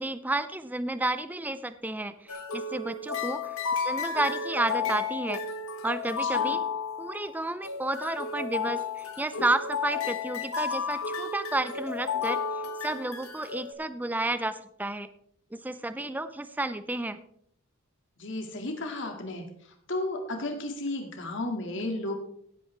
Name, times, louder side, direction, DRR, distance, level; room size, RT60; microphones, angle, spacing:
voice 1, 0.0-5.4 5.8-6.6 7.0-15.1 15.5-17.2, right 2 dB, 10° right, 12 dB, 0.5 m, -31 dB
sound 1, 2.3-13.7, left 5 dB, 80° left, 1.3 m, -32 dB
voice 2, 6.2-6.6 18.2-22.1, left 2 dB, 60° left, 3 dB, 2.1 m, -34 dB
17.0 x 8.5 x 3.4 m, 0.68 s
head